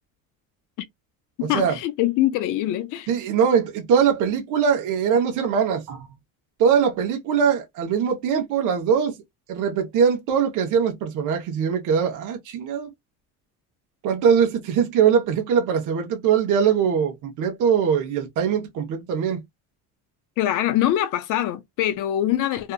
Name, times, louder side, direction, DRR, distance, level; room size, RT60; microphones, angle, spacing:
voice 1, 1.4-3.1 20.4-22.7, left 13 dB, 65° left, 0.5 m, -23 dB
voice 2, 3.1-6.1 6.6-9.1 9.5-12.9 14.0-19.4, right 7 dB, 65° right, 0.9 m, -21 dB
2.7 x 2.3 x 2.3 m
cardioid pair, 125°, 34 cm